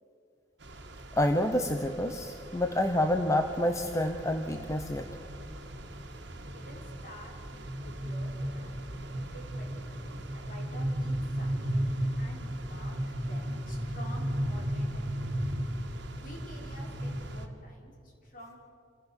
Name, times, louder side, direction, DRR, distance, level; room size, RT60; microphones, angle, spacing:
sound 1, 0.6-17.5, right 1 dB, 65° right, 1.9 m, -36 dB
voice 1, 1.2-5.1, left 1 dB, 15° left, 5 dB, 0.9 m, -28 dB
voice 2, 6.0-11.8 12.2-15.3 16.1-18.6, equal, 50° left, -2 dB, 5.1 m, -50 dB
27.0 x 15.5 x 7.2 m, 2.4 s
head